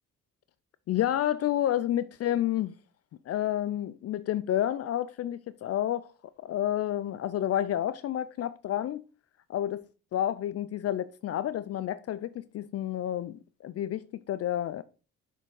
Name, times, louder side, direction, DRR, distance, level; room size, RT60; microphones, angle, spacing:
voice 1, 0.9-2.7 3.3-6.1 6.4-9.0 9.5-9.8 10.1-14.8, left 11 dB, 55° left, 0.4 m, -30 dB
6.7 x 3.6 x 4.6 m
cardioid pair, 90°, 30 cm